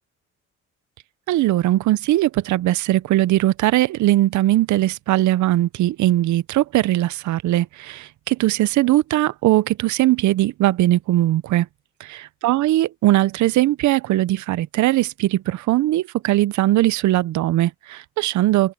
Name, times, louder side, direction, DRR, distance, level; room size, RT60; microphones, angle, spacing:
voice 1, 1.3-11.7 12.0-12.1 12.4-18.7, right 15 dB, 70° right, 0.6 m, -20 dB
open air
cardioid pair, 90°, 30 cm